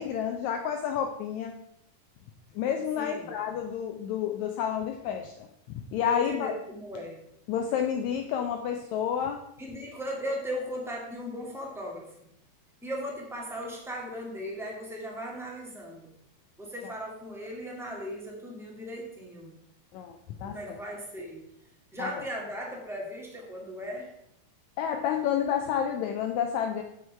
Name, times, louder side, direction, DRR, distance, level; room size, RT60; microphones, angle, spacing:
voice 1, 0.0-1.5 2.5-6.5 7.5-9.4 19.9-20.6 22.0-22.1 24.8-26.8, left 8 dB, 80° left, 4 dB, 1.6 m, -30 dB
voice 2, 3.0-3.3 6.1-7.2 9.6-12.1 12.8-16.1 16.6-19.5 20.4-21.4 21.9-24.1, equal, ahead, -2 dB, 0.8 m, -37 dB
7.8 x 6.4 x 5.6 m, 0.77 s
omnidirectional pair, 4.0 m